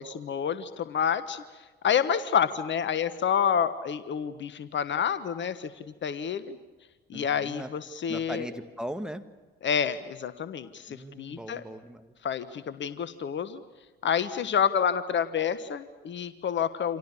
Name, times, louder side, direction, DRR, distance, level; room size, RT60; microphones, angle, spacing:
voice 1, 0.0-1.4 1.8-6.6 7.1-8.5 9.6-11.6 12.2-13.6 14.0-17.0, left 7 dB, 40° left, 13 dB, 1.4 m, -28 dB
voice 2, 7.1-7.7 8.1-9.2 10.9-12.1, equal, ahead, 7 dB, 2.0 m, -39 dB
29.0 x 27.0 x 7.3 m, 1.2 s
figure-of-eight pair, 55°, 30 cm